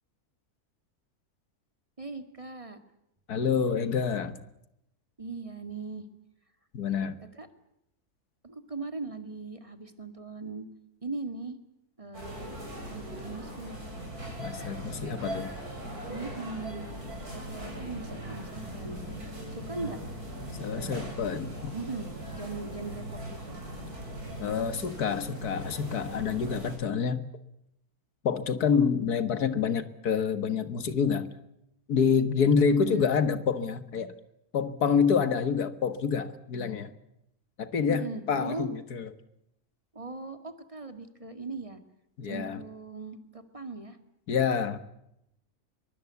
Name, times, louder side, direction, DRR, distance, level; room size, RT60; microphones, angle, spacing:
voice 1, 2.0-2.8 5.2-6.1 7.3-7.5 8.4-10.7 11.0-11.6 12.0-12.5 12.9-13.8 16.1-16.9 17.3-19.0 19.5-20.0 20.7-21.1 21.7-23.6 32.6-33.1 37.9-38.7 39.9-41.8 42.2-44.0, right 3 dB, 20° right, 9 dB, 2.1 m, -39 dB
voice 2, 3.3-4.4 6.7-7.2 14.4-15.5 20.6-21.8 24.4-27.2 28.2-31.3 31.9-34.1 34.5-36.9 37.6-39.1 42.2-42.6 44.3-44.8, left 6 dB, 90° left, 12 dB, 2.0 m, -27 dB
sound 1, 12.1-26.8, right 1 dB, 80° right, 7.2 m, -39 dB
24.0 x 23.0 x 8.3 m, 0.81 s
omnidirectional pair, 1.6 m